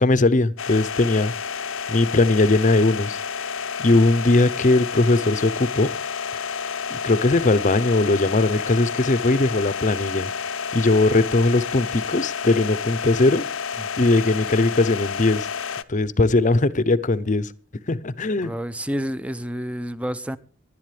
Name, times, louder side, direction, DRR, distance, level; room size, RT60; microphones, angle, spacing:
voice 1, 0.0-3.2 3.8-5.9 6.9-10.3 10.7-13.4 14.0-15.5 15.9-17.5 17.9-18.5, left 2 dB, 40° left, 0.7 m, -20 dB
sound 1, 0.6-15.8, left 6 dB, 75° left, 0.7 m, -30 dB
voice 2, 18.4-20.4, equal, 5° right, 0.6 m, -29 dB
18.0 x 11.5 x 3.3 m
head